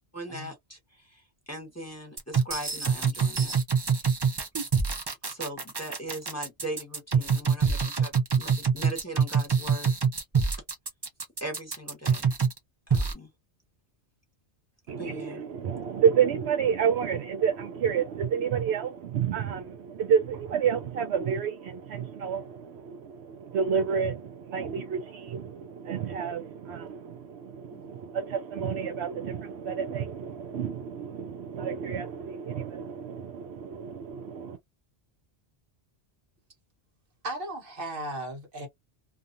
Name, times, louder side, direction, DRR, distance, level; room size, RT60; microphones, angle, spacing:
voice 1, 0.1-3.5 4.0-4.1 5.2-9.9 11.4-12.3 12.9-13.3 15.0-15.4 27.7-28.0, right 1 dB, 15° left, 1.0 m, -40 dB
sound 1, 2.2-12.6 12.9-13.1, right 6 dB, 30° right, 0.5 m, -25 dB
voice 2, 14.9-34.6, right 7 dB, 75° right, 0.8 m, -29 dB
voice 3, 37.2-38.7, right 1 dB, 55° right, 1.3 m, -36 dB
2.5 x 2.3 x 2.5 m
omnidirectional pair, 1.1 m